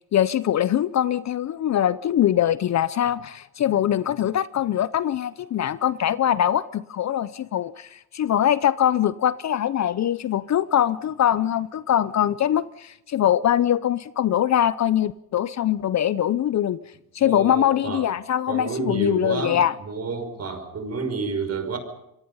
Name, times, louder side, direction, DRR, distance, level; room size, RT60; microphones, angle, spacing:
voice 1, 0.1-16.8 17.1-19.8, left 10 dB, 40° left, 0.7 m, -22 dB
voice 2, 17.2-18.1 18.5-21.8, right 4 dB, 35° right, 5.6 m, -30 dB
26.5 x 22.5 x 5.6 m
supercardioid pair, 95°, 41 cm